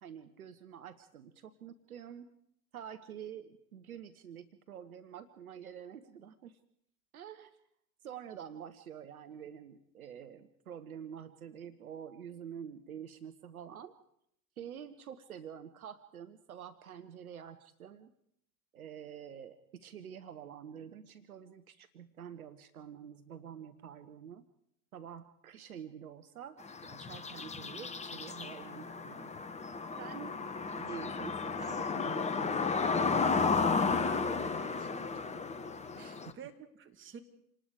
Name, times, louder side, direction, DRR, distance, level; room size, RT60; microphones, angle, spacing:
voice 1, 0.0-2.3 2.7-6.6 7.1-7.6 8.0-13.9 14.6-18.1 18.7-24.4 24.9-29.3 30.0-30.3 30.8-33.2 35.9-36.4, right 8 dB, 70° right, 11 dB, 1.2 m, -48 dB
Suburbia urban birds and cars, 26.6-36.3, left 4 dB, 15° left, 1.2 m, -33 dB
voice 2, 34.0-35.4 35.9-36.0 36.3-37.2, right 8 dB, 25° right, 6 dB, 2.4 m, -50 dB
27.5 x 19.5 x 4.9 m, 0.70 s
figure-of-eight pair, 80°, 44 cm